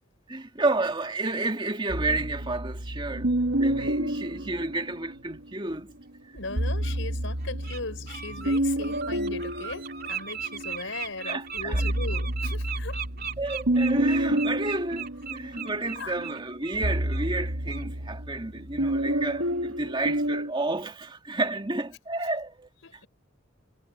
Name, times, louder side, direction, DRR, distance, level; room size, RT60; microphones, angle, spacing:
voice 1, 0.3-5.9 10.8-10.9 11.3-11.9 13.4-22.7, right 2 dB, 25° right, 2.3 m, -31 dB
sound 1, 1.9-5.4 6.4-10.8 11.2-20.5, right 1 dB, 85° right, 1.9 m, -29 dB
Bird, 6.0-6.1 6.8-7.0 7.4-7.8 8.1-16.8 17.1-17.3 17.7-17.9, right 8 dB, 50° right, 3.0 m, -37 dB
voice 2, 6.3-13.0 16.0-16.2 22.8-23.1, left 3 dB, 70° left, 5.6 m, -38 dB
head